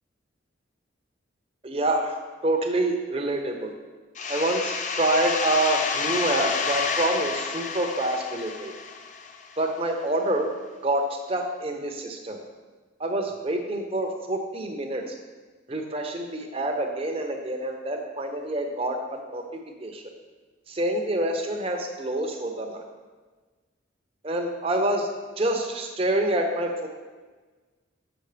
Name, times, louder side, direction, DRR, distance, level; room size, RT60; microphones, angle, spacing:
voice 1, 1.6-2.2 2.4-3.7 4.3-8.7 9.6-10.5 10.8-12.4 13.0-15.0 15.7-19.4 19.8-20.0 20.7-22.8 24.2-25.1 25.4-26.9, right 1 dB, 30° right, 3 dB, 0.7 m, -27 dB
sound 1, 4.1-9.6, left 5 dB, 40° left, 0.4 m, -29 dB
7.9 x 6.3 x 3.3 m, 1.4 s
head